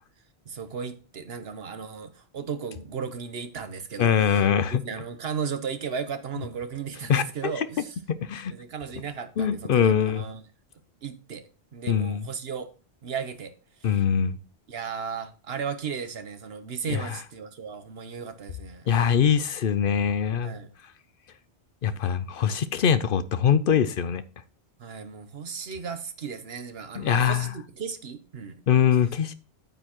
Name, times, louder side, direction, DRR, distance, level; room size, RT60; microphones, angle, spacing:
voice 1, 0.5-7.9 8.5-10.4 11.0-11.4 11.7-12.7 13.0-13.5 13.8-14.0 14.7-18.9 20.4-20.7 24.8-28.6, right 6 dB, 75° right, 1.2 m, -35 dB
voice 2, 4.0-4.8 7.1-7.7 8.1-8.5 9.4-10.3 11.9-12.3 13.8-14.4 16.9-17.2 18.9-20.6 21.8-24.2 26.9-27.5 28.7-29.3, left 8 dB, 65° left, 0.8 m, -23 dB
9.0 x 8.5 x 3.0 m
omnidirectional pair, 1.1 m